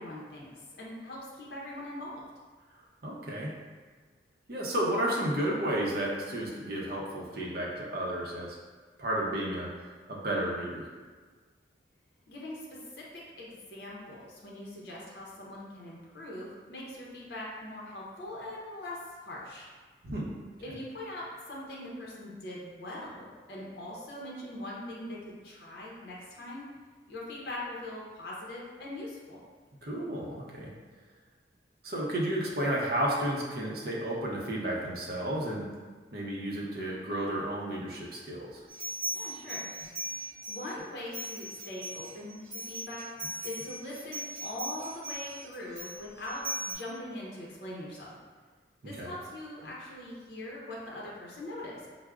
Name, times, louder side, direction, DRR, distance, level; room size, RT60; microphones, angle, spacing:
voice 1, 0.0-2.2 12.3-13.0 13.4-19.7 20.6-26.7 27.1-29.4 39.1-39.6 40.5-43.1 43.4-48.1 48.8-51.9, left 1 dB, 60° left, -5 dB, 0.6 m, -41 dB
voice 2, 3.0-3.5 4.5-8.6 9.0-10.9 20.0-20.3 29.8-30.7 31.8-35.7 36.1-38.6 48.8-49.1, right 1 dB, 55° right, -3 dB, 0.6 m, -32 dB
sound 1, 38.7-40.7 41.1-46.7, right 1 dB, 10° right, 1.4 m, -39 dB
4.6 x 2.0 x 2.3 m, 1.5 s
head